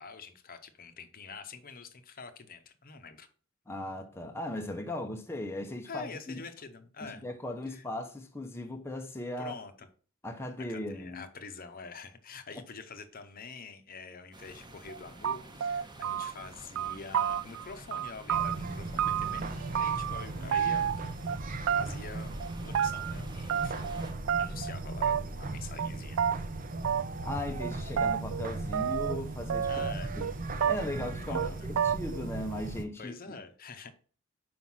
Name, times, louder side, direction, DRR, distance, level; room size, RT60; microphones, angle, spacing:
voice 1, 0.0-3.3 5.9-7.2 7.7-7.8 9.4-9.9 10.7-20.9 21.7-23.8 24.4-26.2 29.7-30.1 31.2-31.7 33.0-33.9, left 4 dB, 45° left, 0.8 m, -46 dB
voice 2, 3.7-6.4 7.0-9.6 10.2-11.2 12.5-12.6 27.2-29.7 30.2-30.3 30.6-33.1, left 1 dB, 10° left, 0.7 m, -38 dB
sound 1, 14.3-24.1, right 1 dB, 20° right, 1.1 m, -50 dB
sound 2, 14.9-15.0 15.2-16.5 16.8-17.6 17.9-19.4 19.7-20.2 20.5-21.4 21.7-22.1 22.4-23.1 23.5-24.0 24.3-24.7 25.0-25.5 25.8-25.9 26.2-26.4 26.8-27.3 27.6-29.2 29.5-30.3 30.6-31.1 31.3-31.5 31.8-32.2, right 8 dB, 70° right, 0.4 m, -30 dB
sound 3, 18.3-32.8, right 2 dB, 40° right, 0.8 m, -38 dB
5.6 x 5.1 x 6.0 m
head